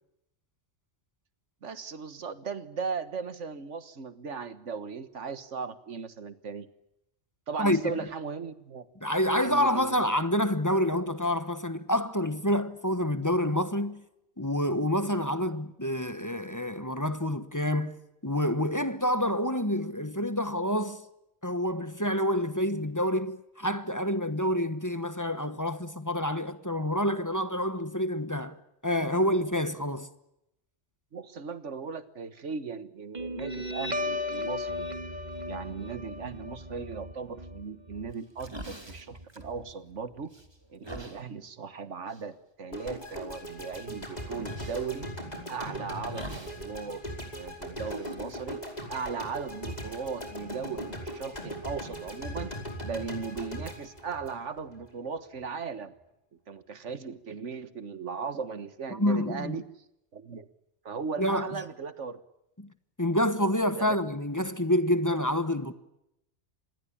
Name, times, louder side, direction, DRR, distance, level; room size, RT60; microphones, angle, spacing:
voice 1, 1.6-6.7 7.5-8.9 9.4-9.9 31.1-34.9 35.5-40.3 40.7-45.1 45.5-47.0 47.3-48.6 48.9-52.5 52.8-55.9 56.5-59.6 60.1-60.5 60.9-62.2 63.8-64.1, right 5 dB, 90° right, 1.8 m, -37 dB
voice 2, 7.6-8.0 9.0-14.0 14.4-21.0 21.4-28.6 28.8-30.1 59.0-59.6 61.2-61.5 62.6-62.7 63.0-65.7, left 1 dB, 15° left, 1.2 m, -28 dB
Guitar, 33.1-40.1, left 1 dB, 40° right, 1.8 m, -36 dB
sound 1, 38.1-40.0 40.3-41.2 42.1-42.3 42.8-43.2 44.4-44.9 46.1-46.8 47.0-47.1 47.8-49.3, right 1 dB, 20° right, 2.5 m, -45 dB
sound 2, 42.7-54.9, equal, 35° left, 5.3 m, -39 dB
26.0 x 20.5 x 8.6 m
omnidirectional pair, 1.2 m